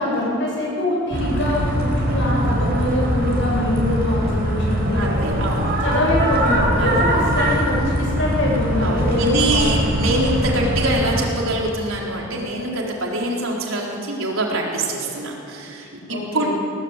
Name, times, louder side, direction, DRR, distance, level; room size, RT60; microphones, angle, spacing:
voice 1, 0.0-5.4 5.8-9.7 16.1-16.5, left 1 dB, 60° left, -3 dB, 7.6 m, -23 dB
sound 1, 1.1-11.2, equal, 50° right, 4.6 m, -22 dB
voice 2, 4.9-5.8 6.7-7.0 8.8-15.9 16.3-16.5, right 2 dB, 80° right, -2 dB, 4.3 m, -24 dB
21.5 x 18.5 x 8.3 m, 2.7 s
head